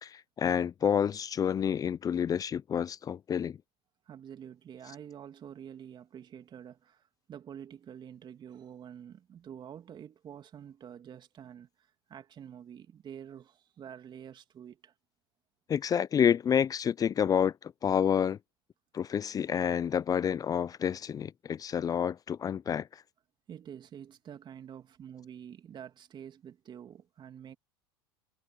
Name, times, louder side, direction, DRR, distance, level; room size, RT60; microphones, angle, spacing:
voice 1, 0.0-3.6 15.7-18.4 18.9-23.0, left 8 dB, 30° left, 0.6 m, -29 dB
voice 2, 4.1-14.9 23.5-27.6, right 9 dB, 35° right, 2.8 m, -47 dB
hypercardioid pair, 90°, 13 cm